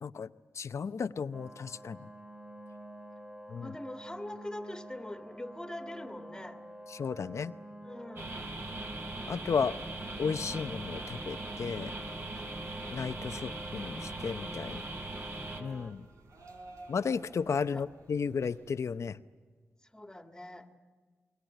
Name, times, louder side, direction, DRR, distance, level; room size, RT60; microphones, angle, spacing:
voice 1, 0.0-2.1 3.5-3.7 6.9-7.5 9.3-9.8 10.2-11.9 12.9-14.8 15.6-16.1 16.9-19.2, left 6 dB, 70° left, 13 dB, 0.7 m, -34 dB
sound 1, 1.3-15.9, right 1 dB, 20° right, 1.6 m, -48 dB
voice 2, 3.6-6.6 7.8-8.5 14.6-15.3 17.7-17.9 19.8-20.7, left 1 dB, 15° left, 6 dB, 1.9 m, -44 dB
sound 2, 8.2-15.6, right 2 dB, 50° right, 4.0 m, -40 dB
sound 3, 10.6-19.0, right 2 dB, 80° right, 4.0 m, -55 dB
29.5 x 21.5 x 9.2 m, 1.5 s
wide cardioid pair, 80°, 5 cm